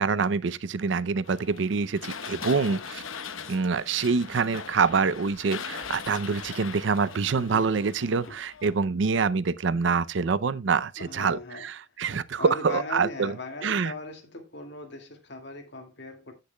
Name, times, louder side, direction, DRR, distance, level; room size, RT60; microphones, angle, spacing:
voice 1, 0.0-3.0 3.5-13.4 13.6-13.9, right 5 dB, 65° right, 0.5 m, -26 dB
sound 1, 1.2-8.9, left 6 dB, 90° left, 1.0 m, -40 dB
voice 2, 2.5-2.8 7.3-7.8 8.2-8.4 11.0-11.7 12.4-16.4, left 2 dB, 60° left, 2.1 m, -39 dB
15.5 x 6.7 x 2.2 m
head